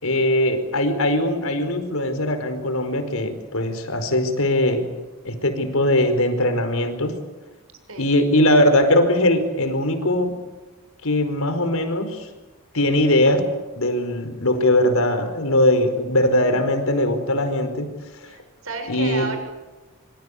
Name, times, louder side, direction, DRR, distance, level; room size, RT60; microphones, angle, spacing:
voice 1, 0.0-4.9 5.2-7.2 8.0-10.4 11.0-12.3 12.7-13.5 13.8-18.3 18.9-19.4, left 1 dB, 85° left, 8 dB, 4.8 m, -20 dB
voice 2, 18.3-19.4, right 3 dB, 80° right, 5 dB, 7.4 m, -32 dB
26.5 x 25.5 x 8.5 m, 1.2 s
head